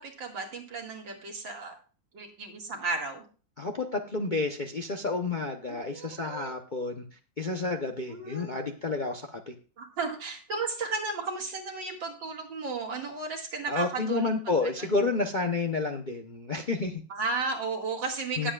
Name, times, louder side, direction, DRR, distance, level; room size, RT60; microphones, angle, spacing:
voice 1, 0.0-1.7 2.1-3.2 5.7-6.5 8.1-8.7 9.8-14.3 14.8-15.0 17.1-18.5, right 3 dB, 80° right, 1 dB, 2.8 m, -34 dB
voice 2, 3.6-7.0 7.4-9.5 13.7-17.0 18.4-18.5, left 3 dB, 45° left, 3 dB, 0.6 m, -30 dB
19.0 x 7.7 x 2.4 m, 0.37 s
omnidirectional pair, 2.0 m